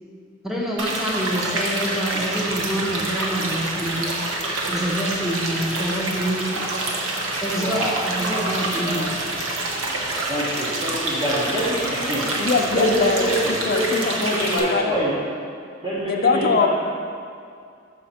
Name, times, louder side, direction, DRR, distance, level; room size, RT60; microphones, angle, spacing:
voice 1, 0.4-4.2 4.6-6.7 7.4-9.2, equal, ahead, -4 dB, 0.7 m, -26 dB
sound 1, 0.8-14.6, right 2 dB, 75° right, 0.9 m, -27 dB
voice 2, 7.6-8.0 8.3-8.5 8.8-9.1 10.3-15.2 15.8-16.7, equal, 25° right, -8 dB, 0.9 m, -26 dB
voice 3, 12.4-14.8 16.0-16.7, left 4 dB, 50° left, 4 dB, 0.5 m, -22 dB
6.5 x 5.9 x 4.2 m, 2.3 s
head